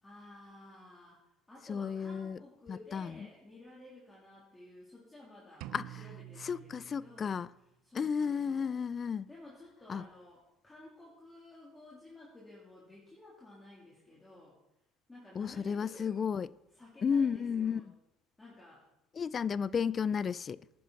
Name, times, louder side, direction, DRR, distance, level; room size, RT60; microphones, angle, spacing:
voice 1, 0.0-7.3 7.8-8.7 9.3-14.6 15.1-16.2 16.7-17.9 18.4-18.8, left 2 dB, 15° left, 3.0 m, -54 dB
voice 2, 1.7-2.4 2.7-3.3 5.7-6.0 6.4-7.5 7.9-9.3 9.9-10.0 15.4-16.5 17.0-17.8 19.1-20.6, left 6 dB, 35° left, 0.3 m, -33 dB
sound 1, 5.6-7.6, right 15 dB, 70° right, 0.4 m, -48 dB
11.0 x 9.3 x 4.1 m
supercardioid pair, 90°, 0 cm